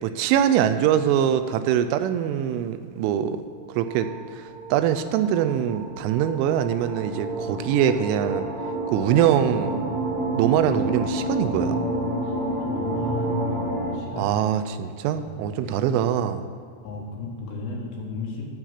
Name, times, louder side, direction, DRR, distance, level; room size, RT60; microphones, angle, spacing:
voice 1, 0.0-3.4 3.8-4.1 4.4-4.5 4.7-8.5 8.9-9.8 10.3-11.8 14.2-16.4, right 9 dB, 85° right, 9 dB, 3.0 m, -23 dB
sound 1, 3.7-13.9, right 1 dB, 45° right, 3.5 m, -29 dB
voice 2, 12.2-14.3 15.1-15.4 15.8-16.0 16.8-18.5, left 3 dB, 70° left, -2 dB, 3.5 m, -36 dB
13.0 x 4.6 x 8.1 m, 2.2 s
omnidirectional pair, 5.5 m